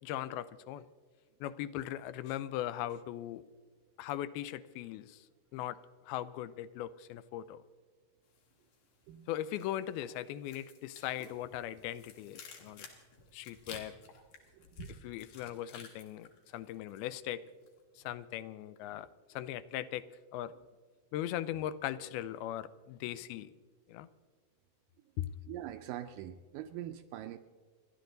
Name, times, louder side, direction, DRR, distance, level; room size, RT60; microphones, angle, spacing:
voice 1, 0.0-0.9 1.4-3.4 4.0-5.3 5.5-5.8 6.0-7.6 9.3-12.9 13.3-14.0 15.0-17.4 18.0-20.1 20.3-20.5 21.1-23.6 23.9-24.1 25.2-25.3, left 12 dB, 90° left, 15 dB, 2.5 m, -39 dB
sound 1, 8.3-9.0 9.3-17.2 17.5-17.8, left 5 dB, 65° left, 3.3 m, -53 dB
voice 2, 14.5-15.0 25.5-27.4, right 12 dB, 80° right, 9 dB, 2.0 m, -43 dB
29.5 x 11.5 x 3.9 m, 1.5 s
omnidirectional pair, 4.3 m